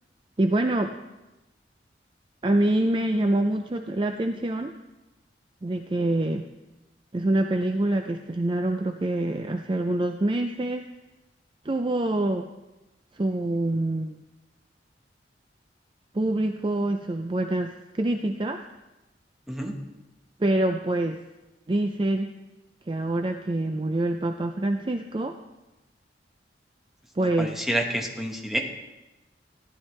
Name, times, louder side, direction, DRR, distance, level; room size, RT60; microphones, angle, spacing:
voice 1, 0.4-1.0 2.4-4.7 5.6-6.5 7.1-10.9 11.6-12.5 13.1-14.2 16.1-18.6 20.4-21.2 21.7-22.3 22.9-25.4 27.2-27.5, right 1 dB, 30° right, 6 dB, 0.4 m, -25 dB
voice 2, 27.4-28.6, right 1 dB, ahead, 1 dB, 1.2 m, -28 dB
15.5 x 11.0 x 3.2 m, 1.0 s
head